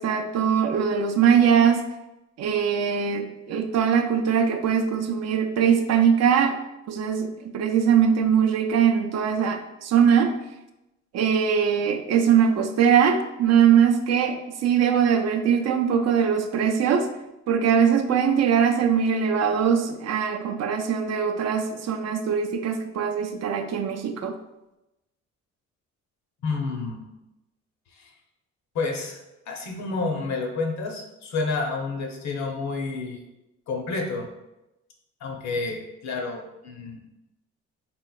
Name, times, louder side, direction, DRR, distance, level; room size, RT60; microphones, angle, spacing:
voice 1, 0.0-1.8 2.4-6.6 6.9-10.3 11.1-17.1 17.5-24.3, right 7 dB, 60° right, 6 dB, 0.4 m, -21 dB
voice 2, 26.4-27.0 27.9-28.1 28.7-29.2 29.5-33.2 33.7-34.3 35.2-37.2, left 3 dB, 65° left, 2 dB, 0.7 m, -29 dB
3.3 x 2.9 x 2.3 m, 0.94 s
cardioid pair, 90°, 30 cm